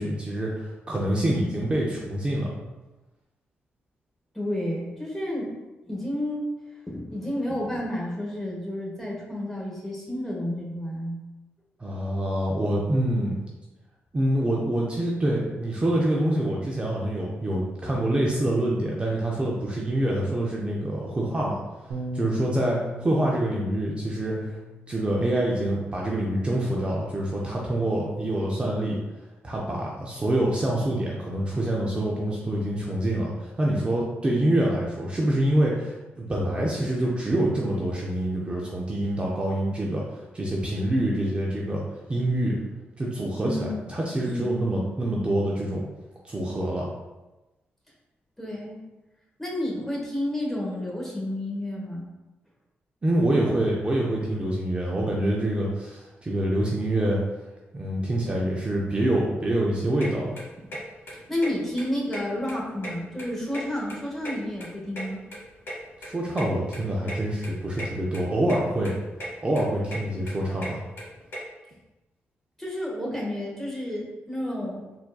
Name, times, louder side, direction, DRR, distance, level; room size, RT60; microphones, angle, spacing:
voice 1, 0.0-2.6 11.8-13.4 14.1-21.6 22.1-24.6 24.9-29.0 29.4-40.0 40.3-41.8 42.1-42.6 43.0-45.8 46.2-46.9 53.0-57.2 57.7-60.4 66.0-68.9 69.4-70.8, right 1 dB, 25° right, -3 dB, 0.5 m, -26 dB
voice 2, 4.3-5.5 5.9-6.5 6.9-11.2 43.4-43.9 44.2-44.5 48.4-48.8 49.4-52.1 61.1-65.2 72.6-74.8, left 1 dB, 10° left, -3 dB, 1.0 m, -31 dB
Bass guitar, 21.9-28.1, left 2 dB, 90° right, 0.5 m, -41 dB
sound 1, 60.0-60.1 60.4-60.8 61.1-61.2 61.4-61.5 61.8-62.5 62.8-64.0 64.2-65.7 66.0-66.1 66.4-66.5 66.7-66.8 67.1-67.2 67.4-67.9 68.1-68.6 68.8-69.3 69.6-71.4, equal, 60° left, 1.2 m, -36 dB
4.3 x 2.6 x 2.3 m, 1.1 s
cardioid pair, 90°, 4 cm